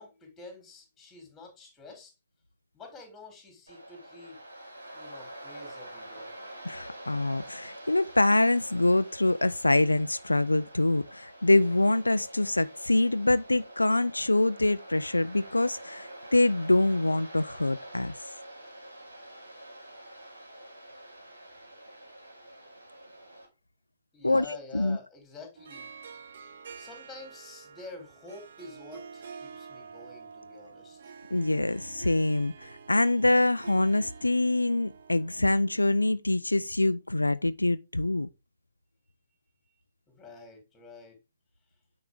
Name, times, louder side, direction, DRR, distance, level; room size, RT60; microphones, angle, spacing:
voice 1, 0.0-2.1 2.7-4.4 4.9-6.3 24.1-25.9 26.8-31.1 39.6-39.7 40.1-41.2, left 3 dB, 10° left, 3.4 m, -48 dB
Waves surf, 3.7-23.5, right 1 dB, 80° right, 3.2 m, -47 dB
voice 2, 6.6-18.1 24.2-24.5 24.7-25.0 31.3-38.3, left 2 dB, 85° left, 0.4 m, -25 dB
Harp, 25.6-35.9, right 6 dB, 55° right, 0.9 m, -48 dB
9.0 x 4.8 x 3.7 m
figure-of-eight pair, 120°, 0 cm